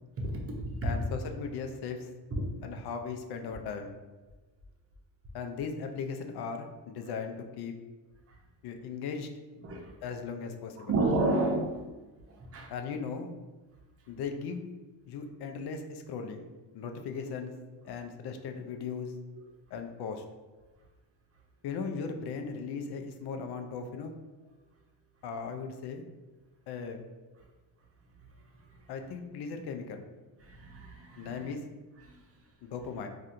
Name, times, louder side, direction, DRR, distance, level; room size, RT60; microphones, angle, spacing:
voice 1, 0.2-0.9 2.3-2.5 8.3-8.4 9.6-9.9 10.8-11.8 12.3-12.7 30.4-31.5 32.0-32.2, right 2 dB, 35° right, 0 dB, 0.7 m, -31 dB
voice 2, 0.8-2.1 2.6-4.0 5.3-7.7 8.6-9.3 10.0-10.9 12.7-13.3 14.1-14.7 15.1-16.5 16.7-17.5 17.8-19.1 19.7-20.2 21.6-24.1 25.2-26.0 26.7-27.0 28.9-30.0 31.2-31.6 32.6-33.1, left 5 dB, 65° left, 5 dB, 0.5 m, -37 dB
4.1 x 2.5 x 2.5 m, 1.2 s
cardioid pair, 110°, 42 cm